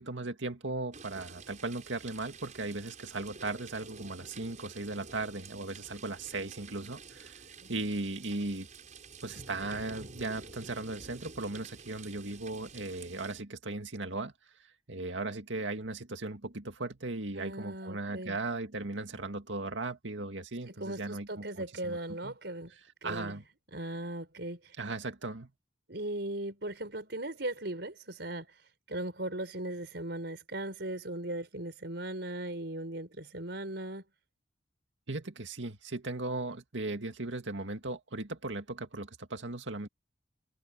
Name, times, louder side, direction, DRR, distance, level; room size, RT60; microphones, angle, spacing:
voice 1, 0.0-7.4 7.7-8.7 9.2-14.3 14.9-22.0 22.2-22.3 23.0-23.4 24.8-25.5 35.1-39.9, right 2 dB, 85° right, 2.2 m, -37 dB
sound 1, 0.9-13.4, right 4 dB, 40° right, 8.0 m, -50 dB
voice 2, 17.4-18.4 20.8-22.7 23.0-23.3 23.7-24.8 25.9-28.5 28.9-34.0, right 1 dB, 65° right, 5.6 m, -38 dB
head